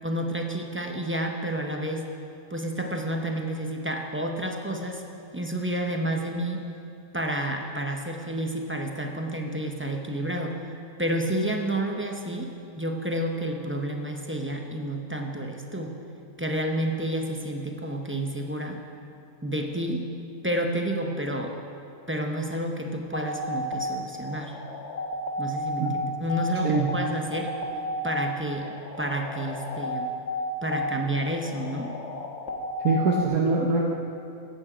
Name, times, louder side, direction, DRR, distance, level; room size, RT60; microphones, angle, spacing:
voice 1, 0.0-2.0 2.5-5.0 5.3-6.6 7.1-10.7 11.0-16.0 16.4-18.8 19.4-20.1 20.4-21.6 22.1-24.6 25.4-27.5 28.0-30.1 30.6-31.9, right 1 dB, 10° right, 2 dB, 0.6 m, -30 dB
sound 1, 23.1-33.3, left 2 dB, 50° left, 1.4 m, -32 dB
voice 2, 32.8-33.8, right 3 dB, 75° right, -2 dB, 1.4 m, -23 dB
14.5 x 9.4 x 5.0 m, 2.5 s
omnidirectional pair, 1.5 m